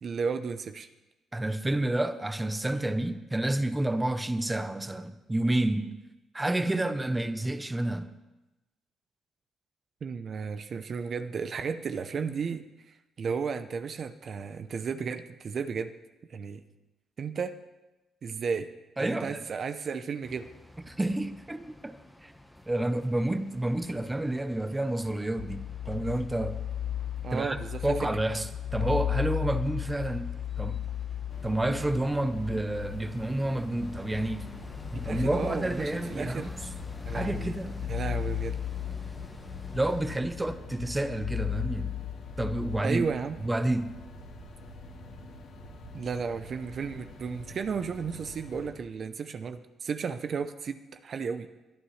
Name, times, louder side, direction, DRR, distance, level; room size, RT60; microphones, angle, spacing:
voice 1, 0.0-0.9 10.0-12.7 13.2-15.9 16.3-16.6 17.2-17.6 18.2-18.7 19.0-20.5 27.2-27.8 35.0-36.5 37.0-37.5 37.9-38.6 42.8-43.4 45.9-51.5, right 5 dB, 50° right, 9 dB, 0.7 m, -33 dB
voice 2, 1.3-6.0 6.3-8.1 19.0-19.4 20.9-22.0 22.2-22.3 22.7-26.6 27.3-30.8 31.4-34.5 34.9-36.5 37.1-37.9 39.7-41.9 42.4-43.1 43.4-44.0, right 1 dB, 15° right, 10 dB, 0.8 m, -29 dB
sound 1, 20.2-40.0, left 1 dB, 5° left, 1.2 m, -50 dB
sound 2, 25.4-42.8, left 11 dB, 65° left, 0.4 m, -36 dB
sound 3, 31.3-48.7, left 1 dB, 85° left, 3.8 m, -46 dB
21.0 x 11.0 x 3.3 m, 1.0 s
cardioid pair, 90°, 0 cm